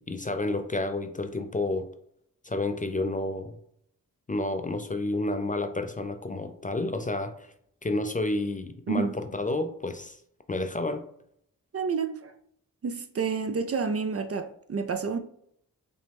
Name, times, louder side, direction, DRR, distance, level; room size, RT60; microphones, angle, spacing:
voice 1, 0.0-1.9 2.4-3.6 4.3-7.5 7.8-10.2 10.5-11.0, left 2 dB, 25° left, 0.4 m, -30 dB
voice 2, 8.9-9.2 11.7-12.3 12.8-15.2, right 5 dB, 40° right, 0.5 m, -29 dB
5.3 x 2.1 x 3.4 m
cardioid pair, 65°, 36 cm